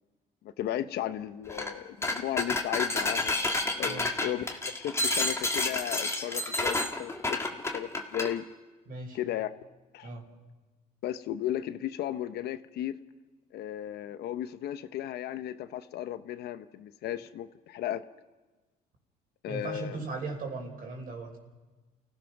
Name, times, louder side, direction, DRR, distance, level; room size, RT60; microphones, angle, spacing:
voice 1, 0.4-3.3 3.8-8.4 9.1-9.5 9.9-10.1 11.0-12.9 13.5-18.0 19.4-20.0, left 12 dB, 75° left, 12 dB, 0.9 m, -35 dB
sound 1, 1.5-1.7 2.0-8.3, left 2 dB, 15° left, 1.9 m, -30 dB
voice 2, 8.9-9.2 10.0-10.2 19.5-21.4, right 3 dB, 60° right, 1 dB, 4.7 m, -38 dB
29.0 x 16.0 x 6.0 m, 1.2 s
cardioid pair, 110°, 17 cm